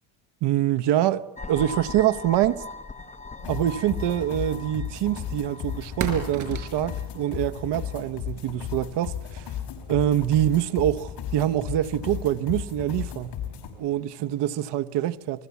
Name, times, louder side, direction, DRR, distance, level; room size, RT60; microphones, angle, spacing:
voice 1, 0.4-2.6 3.5-9.4 9.9-13.3 13.8-15.5, right 12 dB, 60° right, 1.1 m, -25 dB
sound 1, 1.4-8.1, left 3 dB, 15° left, 1.1 m, -41 dB
sound 2, 3.4-13.7, left 9 dB, 55° left, 5.4 m, -35 dB
sound 3, 4.8-14.7, right 5 dB, 40° right, 4.7 m, -42 dB
29.5 x 19.5 x 8.3 m
cardioid pair, 145°, 48 cm